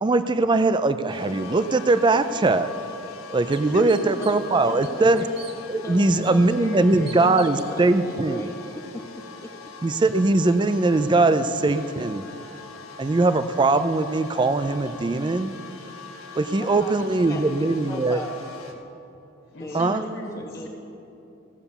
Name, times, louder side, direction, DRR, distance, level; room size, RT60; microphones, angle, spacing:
voice 1, 0.0-2.7 3.3-5.3 5.7-8.5 9.8-12.2 13.0-15.5 16.4-18.2 19.7-20.0, right 2 dB, 20° right, 12 dB, 0.4 m, -21 dB
sound 1, 1.1-18.7, left 5 dB, 85° left, 1.5 m, -42 dB
sound 2, 2.5-2.6 3.1-3.2 3.5-4.5 4.8-5.5 6.2-6.3 7.1-7.7, right 5 dB, 55° right, 1.3 m, -44 dB
voice 2, 3.7-4.0 19.5-20.7, equal, 65° left, -1 dB, 2.0 m, -35 dB
voice 3, 4.2-5.3 5.8-9.0 16.6-18.8 19.6-20.0 20.4-20.7, left 1 dB, 15° left, 0 dB, 0.7 m, -37 dB
15.5 x 6.9 x 7.1 m, 2.9 s
head